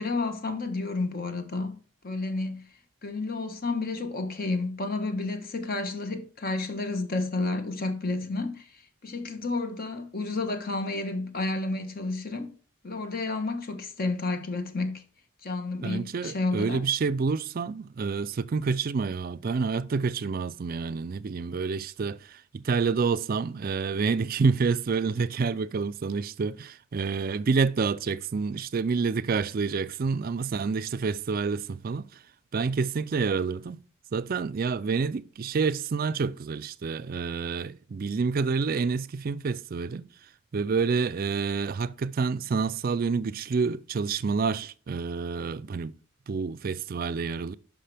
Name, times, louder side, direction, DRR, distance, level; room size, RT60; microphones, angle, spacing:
voice 1, 0.0-1.8 2.0-2.7 3.0-12.5 12.8-15.0 15.4-16.8, left 3 dB, 45° left, 1.1 m, -31 dB
voice 2, 15.8-32.1 32.5-33.8 34.1-40.1 40.5-45.9 46.3-47.5, right 5 dB, 40° right, 0.4 m, -28 dB
10.0 x 5.8 x 3.4 m
head